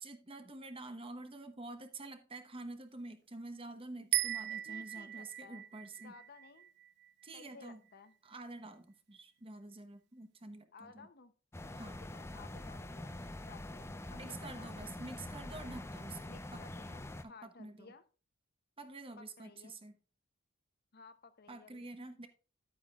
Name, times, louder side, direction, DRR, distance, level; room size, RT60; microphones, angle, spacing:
voice 1, 0.0-6.1 7.2-7.8 8.2-11.1 11.7-12.0 14.1-16.6 17.2-17.9 18.8-19.9 21.5-22.3, right 2 dB, 25° right, 1.0 m, -48 dB
sound 1, 4.1-7.5, right 15 dB, 50° right, 0.3 m, -38 dB
voice 2, 4.7-5.7 6.0-6.7 7.3-8.1 10.7-11.3 11.8-13.1 13.4-14.7 16.2-18.0 19.2-19.8 20.9-21.9, left 4 dB, 45° left, 0.8 m, -57 dB
sound 2, 11.5-17.2, left 1 dB, 10° left, 0.5 m, -45 dB
11.0 x 8.8 x 2.4 m
head